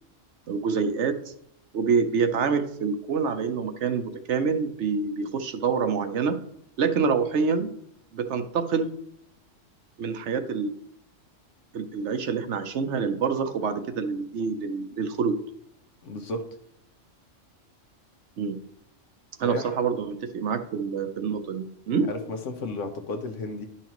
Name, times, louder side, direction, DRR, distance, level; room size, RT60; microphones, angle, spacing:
voice 1, 0.5-1.2 1.7-6.4 6.8-7.7 8.1-8.9 10.0-10.7 11.7-15.4 18.4-18.6 19.4-22.1, right 5 dB, 70° right, 8 dB, 1.0 m, -26 dB
voice 2, 16.0-16.6 19.4-19.8 21.9-23.7, left 2 dB, 75° left, 6 dB, 1.2 m, -33 dB
11.0 x 5.7 x 3.0 m, 0.71 s
omnidirectional pair, 1.3 m